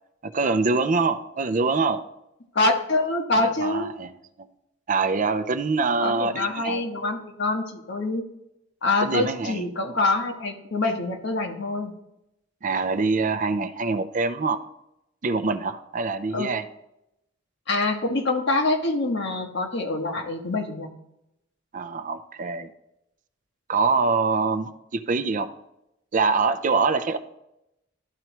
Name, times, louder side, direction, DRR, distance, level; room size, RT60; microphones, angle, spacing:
voice 1, 0.2-2.0 3.4-4.1 4.4-4.5 4.9-6.8 9.0-9.6 12.6-14.6 15.2-16.6 21.7-22.7 23.7-25.5 26.1-27.2, right 4 dB, 40° right, 10 dB, 0.5 m, -24 dB
voice 2, 2.5-3.9 6.0-8.3 8.8-11.9 16.3-16.5 17.7-20.9, left 2 dB, 65° left, 3 dB, 1.2 m, -25 dB
12.5 x 4.5 x 3.0 m, 0.85 s
head